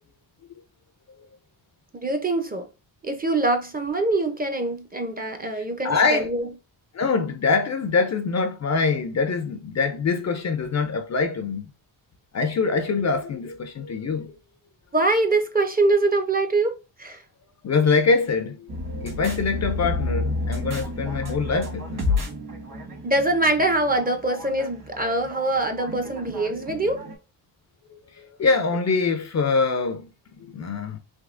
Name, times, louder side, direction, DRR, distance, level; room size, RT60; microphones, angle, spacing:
voice 1, 2.0-2.7 3.0-6.5 14.9-17.2 23.0-27.0, right 2 dB, 20° right, 0.5 m, -24 dB
voice 2, 5.5-6.3 6.9-11.7 12.3-14.3 17.6-18.7 19.0-22.0 28.2-30.1 30.5-31.0, left 4 dB, 40° left, 0.4 m, -24 dB
sound 1, 18.7-27.1, left 2 dB, 45° right, 1.4 m, -31 dB
3.5 x 2.7 x 2.4 m
cardioid pair, 85°, 45 cm